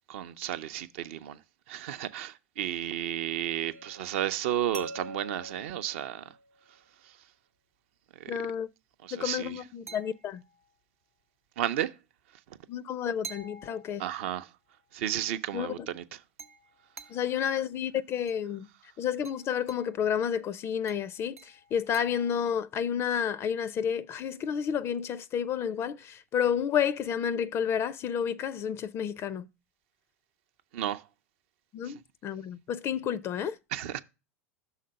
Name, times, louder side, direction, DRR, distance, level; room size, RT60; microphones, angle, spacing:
voice 1, 0.1-1.4 1.7-6.2 8.2-8.3 9.0-9.6 11.6-11.9 14.0-14.5 14.9-16.2 30.7-31.0 31.8-31.9 33.7-34.0, right 11 dB, 60° right, 0.5 m, -33 dB
sound 1, 3.7-6.8 9.9-10.7 13.2-14.4 16.4-17.4 18.3-18.5 19.3-20.0 20.9-22.4, right 2 dB, 85° right, 0.9 m, -47 dB
voice 2, 8.3-8.7 9.1-10.4 12.7-14.0 15.5-15.9 17.1-18.7 19.0-29.5 31.7-33.6, left 8 dB, 35° left, 0.4 m, -30 dB
6.4 x 3.8 x 6.2 m
figure-of-eight pair, 80°, 8 cm